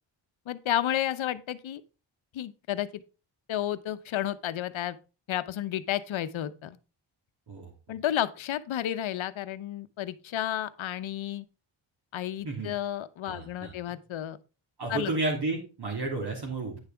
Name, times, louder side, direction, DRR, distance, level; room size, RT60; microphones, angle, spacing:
voice 1, 0.5-1.8 2.3-3.0 3.5-5.0 5.3-6.8 7.9-11.5 12.1-14.4 14.9-15.1, left 11 dB, 70° left, 0.8 m, -31 dB
voice 2, 13.2-13.7 14.8-16.8, right 2 dB, 50° right, 3.0 m, -32 dB
9.8 x 6.8 x 3.5 m
cardioid pair, 75°, 49 cm